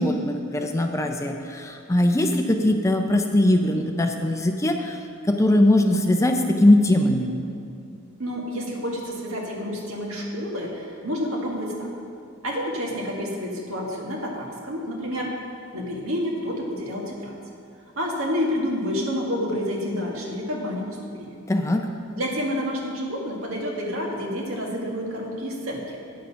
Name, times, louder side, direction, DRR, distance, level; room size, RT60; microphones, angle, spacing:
voice 1, 0.0-5.0 5.3-7.3 21.5-21.9, left 1 dB, 15° left, 4 dB, 0.5 m, -20 dB
voice 2, 8.2-11.9 12.4-15.4 15.7-17.4 17.9-21.3 22.1-26.0, equal, 80° right, -1 dB, 1.7 m, -29 dB
9.3 x 6.4 x 5.7 m, 2.4 s
head